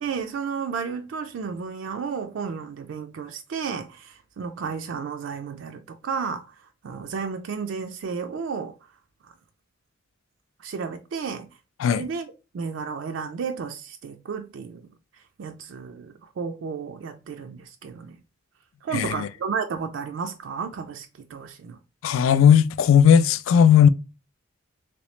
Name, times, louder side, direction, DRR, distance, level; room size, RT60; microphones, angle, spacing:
voice 1, 0.0-6.5 6.8-8.8 10.6-11.5 11.9-12.3 12.5-14.9 15.4-18.2 18.8-21.8, right 6 dB, 65° right, 0.3 m, -32 dB
voice 2, 18.9-19.3 22.0-23.9, left 8 dB, 75° left, 0.3 m, -16 dB
3.1 x 2.9 x 3.1 m
head